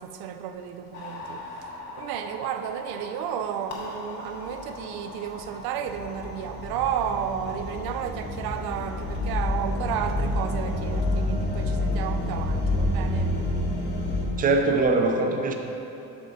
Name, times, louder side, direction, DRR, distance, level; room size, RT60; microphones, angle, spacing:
voice 1, 0.0-13.4, right 8 dB, 70° right, 0.5 m, -32 dB
sound 1, 0.9-14.3, left 1 dB, 60° left, 1.5 m, -30 dB
voice 2, 14.4-15.5, right 3 dB, 20° right, 0.6 m, -22 dB
8.6 x 6.1 x 4.1 m
cardioid pair, 145°, 38 cm